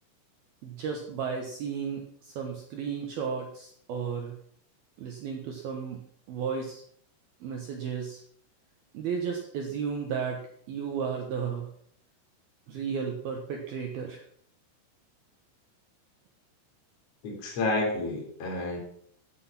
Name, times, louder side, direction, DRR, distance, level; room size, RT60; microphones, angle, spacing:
voice 1, 0.6-4.4 5.0-6.8 7.4-8.2 8.9-11.7 12.7-14.2, right 6 dB, 65° right, 2 dB, 2.7 m, -34 dB
voice 2, 17.2-18.8, left 2 dB, 35° left, -2 dB, 4.5 m, -30 dB
15.5 x 8.3 x 5.9 m, 0.64 s
omnidirectional pair, 5.8 m